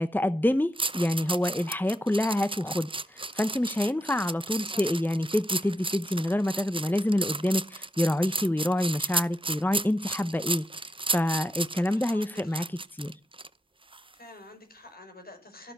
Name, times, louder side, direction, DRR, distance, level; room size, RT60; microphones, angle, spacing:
voice 1, 0.0-10.6 11.1-12.6 13.0-13.1, left 1 dB, 10° left, 0.9 m, -27 dB
sound 1, 0.8-13.5 13.9-14.1, right 3 dB, 35° right, 0.7 m, -34 dB
voice 2, 4.7-5.0 11.9-12.7 14.1-15.7, left 2 dB, 75° left, 6.2 m, -48 dB
13.5 x 12.5 x 6.7 m
cardioid pair, 45°, 16 cm